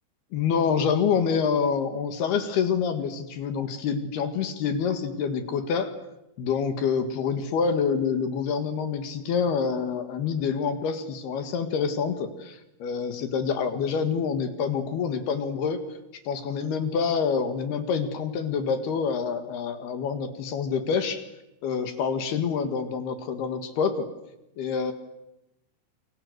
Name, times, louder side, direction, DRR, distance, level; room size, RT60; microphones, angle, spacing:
voice 1, 0.3-5.9 6.4-15.8 16.3-21.3 21.6-24.1 24.6-24.9, left 6 dB, 60° left, 9 dB, 3.4 m, -27 dB
29.0 x 25.0 x 8.0 m, 0.88 s
omnidirectional pair, 5.7 m